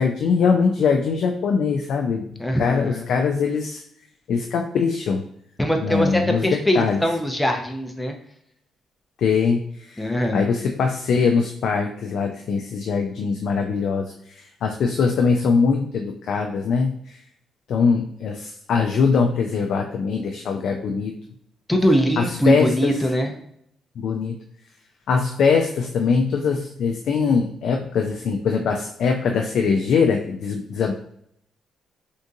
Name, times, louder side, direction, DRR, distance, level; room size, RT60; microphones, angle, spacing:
voice 1, 0.0-2.3 2.6-3.8 4.3-5.2 5.8-6.4 6.7-7.0 9.2-10.0 10.3-17.0 17.7-21.1 22.2-22.9 24.0-24.4 25.1-30.9, left 5 dB, 70° left, 3 dB, 0.3 m, -22 dB
voice 2, 2.4-3.0 5.6-8.2 10.0-10.5 21.7-23.3, equal, 10° left, 3 dB, 0.6 m, -22 dB
3.6 x 2.6 x 2.6 m, 0.70 s
cardioid pair, 90°, 0 cm